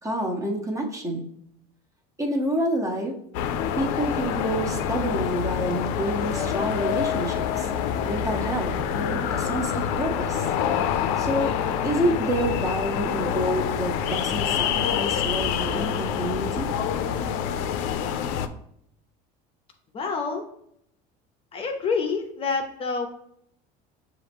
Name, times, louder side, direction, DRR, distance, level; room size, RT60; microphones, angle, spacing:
voice 1, 0.0-1.3 2.2-3.1 3.8-7.7 8.0-10.5 11.2-11.5 11.8-16.7, right 1 dB, 15° right, 1 dB, 0.8 m, -28 dB
sound 1, 3.3-18.5, left 8 dB, 80° left, 0.4 m, -26 dB
voice 2, 19.9-20.4 21.5-23.1, left 4 dB, 30° left, 3 dB, 0.6 m, -27 dB
6.1 x 2.5 x 3.4 m, 0.72 s
cardioid pair, 120°, 18 cm